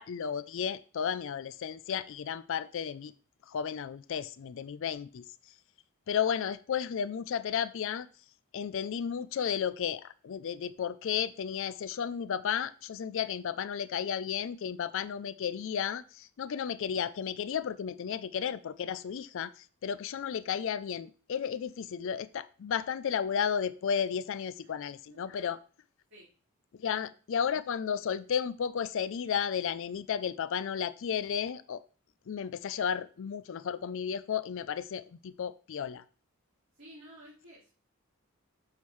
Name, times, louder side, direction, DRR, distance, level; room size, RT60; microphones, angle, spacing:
voice 1, 0.0-3.1 3.5-5.2 6.1-8.1 8.5-25.6 26.8-31.8 32.3-36.0, left 7 dB, 65° left, 0.4 m, -33 dB
voice 2, 25.1-25.5 26.1-26.3 26.8-27.1 36.7-37.7, equal, 60° right, 3.9 m, -53 dB
7.1 x 6.4 x 3.1 m
head